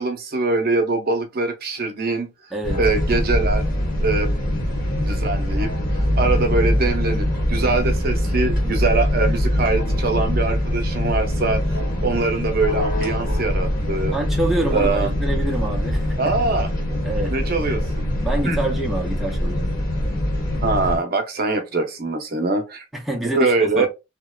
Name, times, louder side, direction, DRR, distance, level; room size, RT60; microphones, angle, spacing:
voice 1, 0.0-2.3 2.8-3.6 4.0-4.3 5.0-5.7 6.2-14.2 14.7-15.2 16.2-16.7 17.3-18.0 18.4-18.6 20.6-22.8 23.3-23.9, right 3 dB, 50° right, 0.6 m, -23 dB
voice 2, 2.5-2.8 14.1-16.2 17.0-17.3 18.2-19.7 22.9-23.9, right 2 dB, ahead, 0.5 m, -26 dB
sound 1, 2.6-21.0, left 1 dB, 50° left, 1.1 m, -23 dB
2.8 x 2.1 x 2.2 m
head